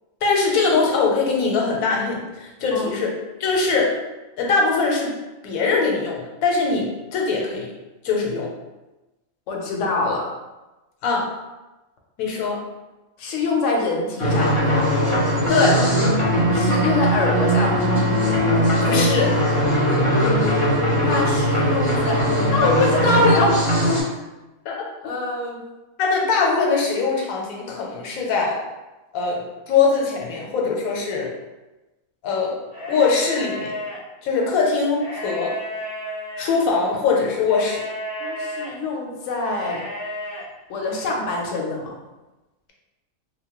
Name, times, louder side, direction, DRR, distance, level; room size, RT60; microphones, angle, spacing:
voice 1, 0.2-3.1 3.4-3.9 4.4-5.1 5.4-7.7 8.0-8.5 11.0-11.3 12.2-12.6 15.5-15.8 18.9-19.3 24.7-24.8 26.0-28.5 29.1-29.4 29.7-31.3 32.2-32.5 32.9-33.7 34.2-35.5 36.4-37.8, left 4 dB, 90° left, -1 dB, 1.1 m, -21 dB
voice 2, 9.5-10.3 13.2-15.0 16.5-18.1 21.0-23.9 25.0-25.6 38.2-39.8 40.7-41.9, left 2 dB, 65° left, -1 dB, 0.9 m, -24 dB
sound 1, 14.2-24.0, equal, 45° left, 0.8 m, -19 dB
sound 2, 32.7-34.0 34.9-36.6 37.5-38.7 39.5-40.4, left 1 dB, 60° right, 1.4 m, -32 dB
2.9 x 2.2 x 2.9 m, 1.1 s
omnidirectional pair, 1.4 m